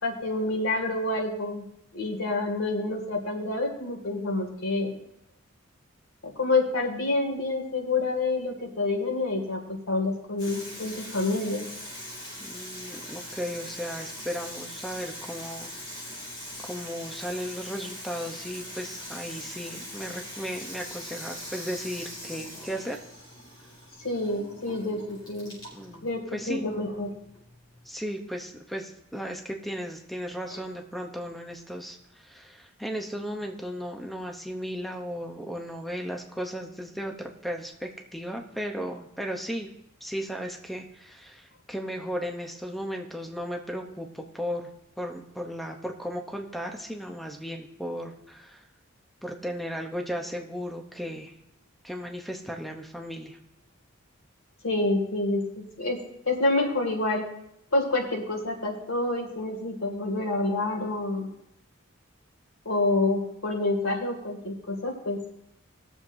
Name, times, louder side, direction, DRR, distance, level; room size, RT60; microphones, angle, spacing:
voice 1, 0.0-1.6 1.9-4.9 6.2-11.6 24.0-25.6 26.0-27.1 54.6-56.0 56.3-57.2 57.7-61.3 62.6-65.2, left 2 dB, 85° left, 1 dB, 2.2 m, -28 dB
Water tap faucet / Sink (filling or washing), 10.4-27.9, left 1 dB, 20° left, 4.8 m, -41 dB
voice 2, 12.4-15.7 16.6-23.0 25.7-26.7 27.8-39.7 40.0-44.7 45.0-48.6 49.2-51.4 51.8-53.4, equal, ahead, 3 dB, 0.7 m, -35 dB
20.5 x 7.2 x 2.6 m, 0.80 s
head